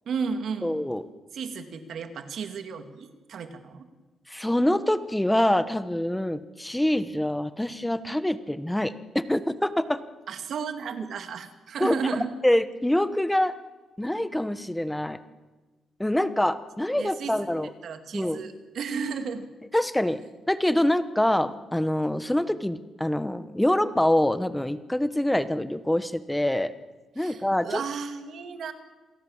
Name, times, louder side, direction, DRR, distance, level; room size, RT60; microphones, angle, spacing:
voice 1, 0.1-0.8 1.3-3.9 10.3-12.3 16.9-17.3 17.8-19.5 27.2-28.7, right 5 dB, 65° right, 8 dB, 2.3 m, -33 dB
voice 2, 0.6-1.0 4.3-10.0 11.8-12.0 12.4-13.5 14.0-15.2 16.0-17.7 18.1-18.4 19.7-20.2 20.5-26.7 27.2-27.8, left 1 dB, 5° left, 12 dB, 1.2 m, -25 dB
27.5 x 17.5 x 7.4 m, 1.2 s
cardioid pair, 120°, 0 cm